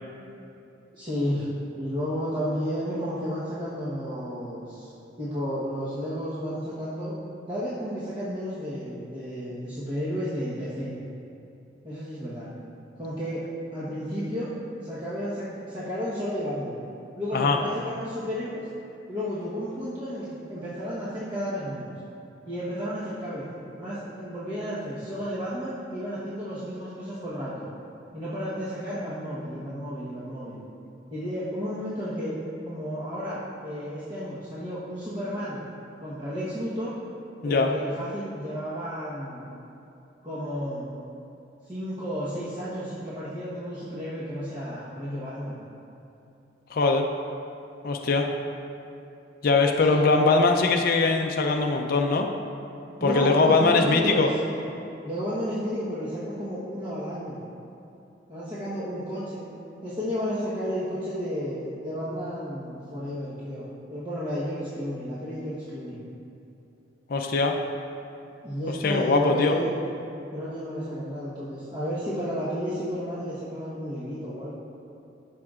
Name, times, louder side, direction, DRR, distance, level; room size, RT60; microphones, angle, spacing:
voice 1, 0.9-1.5 1.8-4.9 5.2-7.1 7.5-10.9 11.8-12.5 13.0-13.5 13.7-14.5 14.8-16.8 17.2-18.6 19.1-21.9 22.4-23.5 23.8-27.7 28.1-30.6 31.1-32.4 32.6-35.6 36.0-36.9 37.4-39.5 40.2-40.9 41.7-45.6 49.9-50.0 53.0-54.4 55.0-57.4 58.3-59.5 59.8-66.0 68.4-69.7 70.3-74.5, equal, 25° right, -11 dB, 1.1 m, -32 dB
voice 2, 46.7-47.1 47.8-48.3 49.4-52.3 53.0-54.3 67.1-67.6 68.8-69.5, left 3 dB, 50° left, 3 dB, 0.5 m, -21 dB
13.0 x 6.4 x 2.4 m, 2.8 s
head